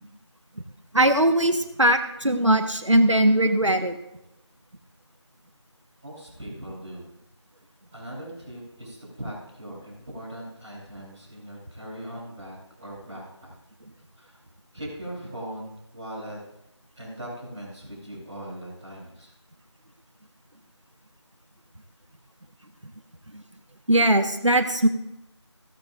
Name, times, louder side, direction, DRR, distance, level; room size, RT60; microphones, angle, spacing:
voice 1, 0.9-4.0 23.9-24.9, right 1 dB, 90° right, 7 dB, 1.4 m, -20 dB
voice 2, 6.0-7.0 7.9-13.5 14.1-14.4 14.7-16.4 16.9-19.3, right 1 dB, 5° right, -14 dB, 3.3 m, -39 dB
17.0 x 14.5 x 2.6 m, 0.85 s
figure-of-eight pair, 175°, 15 cm